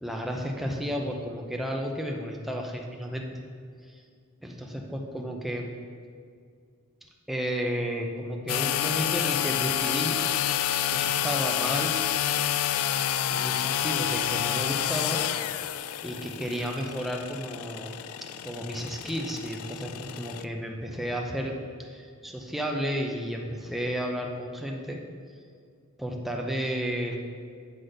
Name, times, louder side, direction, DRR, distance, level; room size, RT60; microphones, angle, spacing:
voice 1, 0.0-3.4 4.4-5.7 7.3-10.2 10.9-11.9 13.3-15.2 15.6-15.7 16.0-18.0 18.4-21.5 21.8-25.0 26.0-27.1, equal, ahead, 0 dB, 0.7 m, -32 dB
sound 1, 8.5-20.4, left 10 dB, 70° left, 0.3 m, -29 dB
9.4 x 4.1 x 6.5 m, 2.2 s
head